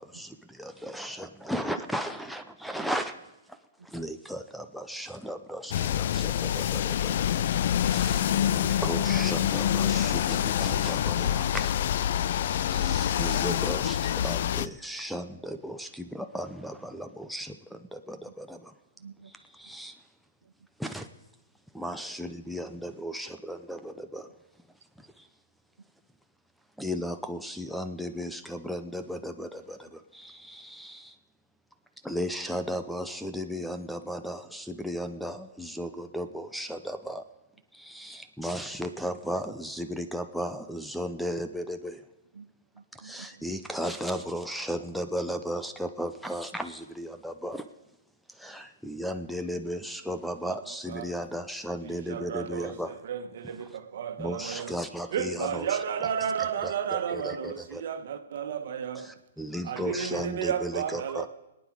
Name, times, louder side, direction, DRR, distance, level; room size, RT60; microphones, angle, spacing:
voice 1, 0.0-3.2 3.8-7.2 7.8-12.1 12.7-18.7 19.6-19.9 20.8-21.1 21.7-24.3 25.0-25.3 26.8-31.1 32.0-37.2 37.7-42.0 42.9-47.6 48.4-52.9 54.2-55.7 56.6-56.7 57.1-57.8 59.4-61.3, equal, ahead, 8 dB, 0.7 m, -35 dB
sound 1, 5.7-14.7, left 10 dB, 60° left, 0.4 m, -26 dB
voice 2, 19.0-19.7 20.4-20.5 42.3-43.5 53.5-53.6, right 5 dB, 85° right, 11 dB, 0.5 m, -51 dB
voice 3, 51.8-54.8 55.1-59.1 59.6-61.3, right 8 dB, 60° right, 8 dB, 1.4 m, -32 dB
22.0 x 9.3 x 4.8 m, 0.97 s
hypercardioid pair, 145°, 0 cm